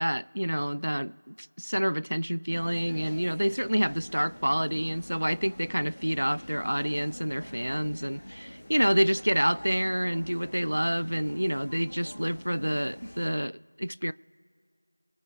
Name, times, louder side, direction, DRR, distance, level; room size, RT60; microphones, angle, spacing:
voice 1, 0.0-14.1, equal, 65° right, 0.4 m, -28 dB
sound 1, 2.5-13.3, equal, 15° left, 1.3 m, -45 dB
24.5 x 8.6 x 2.5 m
figure-of-eight pair, 175°, 0 cm